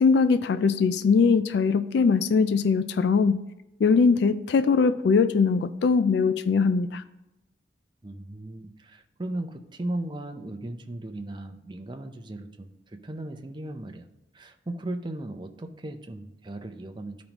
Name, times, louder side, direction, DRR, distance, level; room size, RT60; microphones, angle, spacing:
voice 1, 0.0-3.4 3.8-7.0, left 5 dB, 60° left, 12 dB, 0.3 m, -21 dB
voice 2, 8.0-14.1 14.3-17.2, right 1 dB, 25° right, 6 dB, 0.5 m, -36 dB
12.5 x 5.2 x 3.0 m, 0.91 s
head